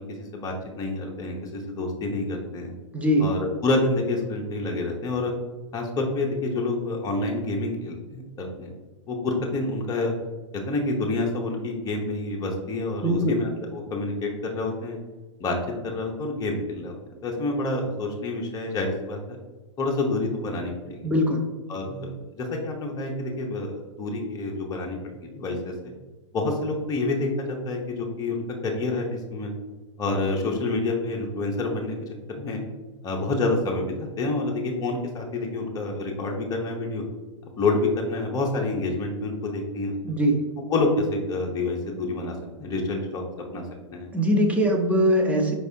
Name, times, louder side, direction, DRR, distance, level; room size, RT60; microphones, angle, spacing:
voice 1, 0.1-2.7 3.2-5.3 5.7-8.7 9.1-10.1 10.5-15.0 15.4-15.6 15.8-17.0 17.2-19.4 19.8-21.0 21.7-22.1 22.4-25.9 26.3-29.5 30.0-32.6 33.0-37.0 37.6-39.9 40.7-43.2 43.5-43.6 43.9-44.1, left 2 dB, 20° left, 1 dB, 0.8 m, -28 dB
voice 2, 2.9-3.3 13.0-13.4 21.0-21.5 40.0-40.4 44.1-45.5, equal, 10° right, 2 dB, 0.5 m, -21 dB
5.0 x 3.3 x 2.7 m, 1.2 s
hypercardioid pair, 115°, 16 cm